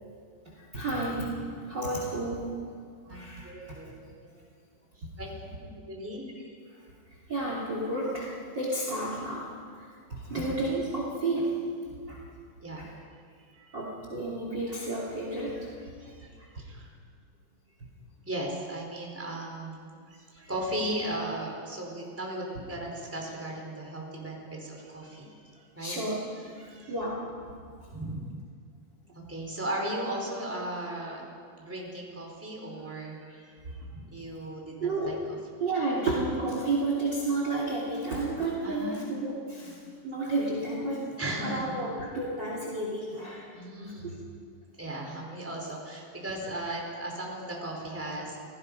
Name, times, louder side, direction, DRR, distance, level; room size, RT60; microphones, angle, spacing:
voice 1, 0.5-1.4 1.7-2.5 3.1-3.5 7.3-9.5 10.1-11.5 12.1-12.2 12.8-12.9 13.7-15.7 25.8-26.2 26.9-27.2 34.8-35.2 35.6-39.8 40.0-43.5 44.0-44.2, right 2 dB, 30° right, -3 dB, 3.3 m, -31 dB
voice 2, 3.0-3.9 4.9-5.3 5.8-6.2 12.6-12.9 13.1-13.9 15.8-16.3 16.6-16.9 18.3-25.9 26.4-26.9 27.9-28.2 29.1-31.2 31.6-35.4 38.6-39.1 39.6-39.8 41.2-41.7 43.3-44.1 44.8-48.4, right 1 dB, 5° right, -1 dB, 4.1 m, -37 dB
29.0 x 18.5 x 5.4 m, 2.2 s
omnidirectional pair, 4.1 m